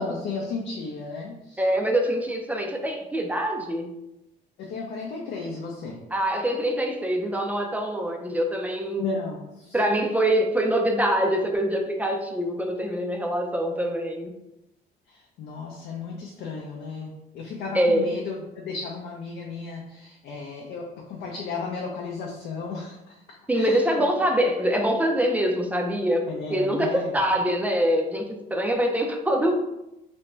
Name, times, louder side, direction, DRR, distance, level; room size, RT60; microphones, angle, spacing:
voice 1, 0.0-1.7 4.6-6.0 9.0-9.8 15.1-24.1 26.3-27.2, left 4 dB, 65° left, 0 dB, 0.5 m, -34 dB
voice 2, 1.6-3.9 6.1-9.2 9.7-14.3 17.7-18.1 23.5-29.5, equal, 10° right, 2 dB, 0.4 m, -24 dB
2.6 x 2.2 x 3.0 m, 0.90 s
cardioid pair, 110°, 17 cm